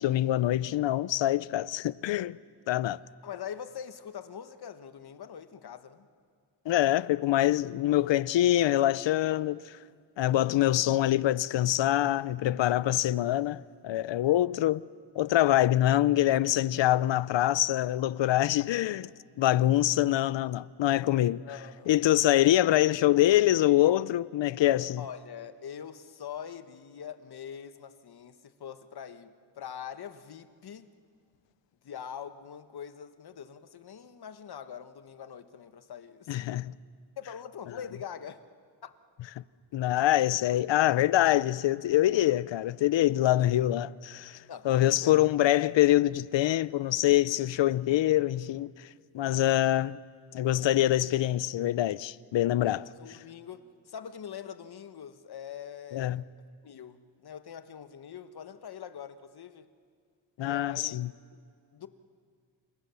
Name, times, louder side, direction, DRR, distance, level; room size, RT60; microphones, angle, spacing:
voice 1, 0.0-2.4 2.7-3.0 6.7-9.7 10.2-14.8 15.2-19.1 19.4-21.4 21.9-25.0 36.3-36.7 39.7-48.9 49.1-50.0 50.3-52.8 55.9-56.2 60.4-61.1, left 14 dB, 75° left, 0.7 m, -25 dB
voice 2, 3.2-6.1 16.9-17.1 21.4-22.1 25.0-30.9 31.8-36.5 37.2-38.4 38.8-38.9 43.4-43.5 44.5-45.2 52.6-56.2 56.6-59.7 60.4-61.0 61.3-61.4 61.7-61.9, left 8 dB, 55° left, 1.3 m, -43 dB
28.5 x 28.0 x 7.0 m
wide cardioid pair, 120°, 45 cm